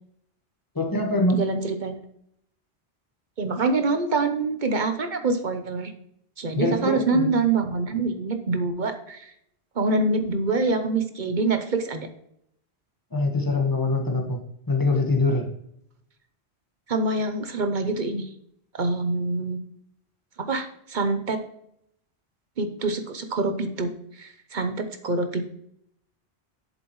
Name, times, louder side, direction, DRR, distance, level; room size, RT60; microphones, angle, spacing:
voice 1, 0.7-1.4 6.5-7.3 13.1-14.4 14.7-15.5, left 2 dB, 20° left, 1 dB, 1.4 m, -23 dB
voice 2, 1.3-1.9 3.4-5.9 6.4-9.3 9.8-12.1 16.9-18.3 18.7-19.6 20.4-21.4 22.6-23.9 24.2-25.5, right 3 dB, 50° right, 8 dB, 0.9 m, -25 dB
7.9 x 7.2 x 3.1 m, 0.72 s
omnidirectional pair, 1.1 m